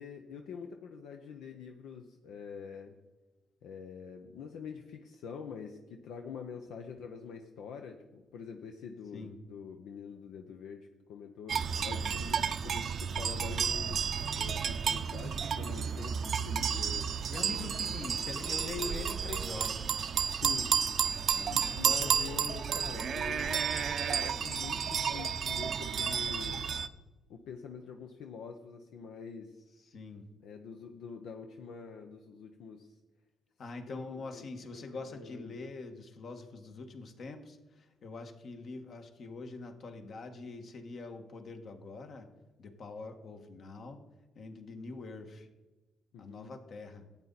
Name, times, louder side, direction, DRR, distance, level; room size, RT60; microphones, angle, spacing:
voice 1, 0.0-2.9 3.6-14.1 14.4-17.1 18.0-18.3 20.3-20.7 21.5-23.6 24.1-26.7 27.3-29.6 30.4-33.0 33.9-34.0 34.3-35.5 46.1-46.5, left 6 dB, 85° left, 4 dB, 0.8 m, -45 dB
sound 1, 11.5-26.9, right 7 dB, 55° right, 0.6 m, -32 dB
voice 2, 17.3-19.9 21.3-21.6 29.8-30.3 33.6-42.3 42.6-44.0 44.3-45.5 46.2-47.1, left 3 dB, 60° left, 5 dB, 1.6 m, -44 dB
Wind instrument woodwind instrument, 17.3-25.2, left 1 dB, 35° left, 1.7 m, -54 dB
12.0 x 8.8 x 4.1 m, 1.1 s
cardioid pair, 90°, 0 cm